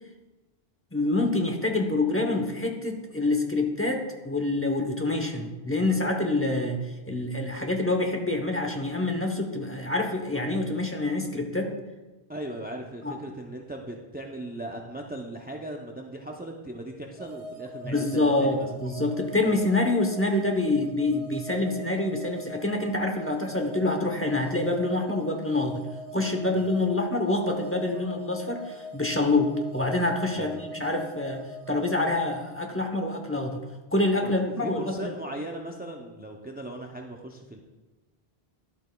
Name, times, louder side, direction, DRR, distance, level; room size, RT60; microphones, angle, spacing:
voice 1, 0.9-11.7 13.0-13.1 17.8-25.8 26.1-33.6 33.9-35.1, left 2 dB, 15° left, 2 dB, 0.8 m, -26 dB
voice 2, 12.3-18.7 19.4-19.6 26.5-26.8 30.3-30.6 34.2-34.3 34.6-37.6, right 1 dB, 15° right, 1 dB, 0.3 m, -38 dB
sound 1, 17.2-32.1, equal, 40° right, 3.0 m, -42 dB
11.5 x 8.1 x 2.3 m, 1.2 s
omnidirectional pair, 1.1 m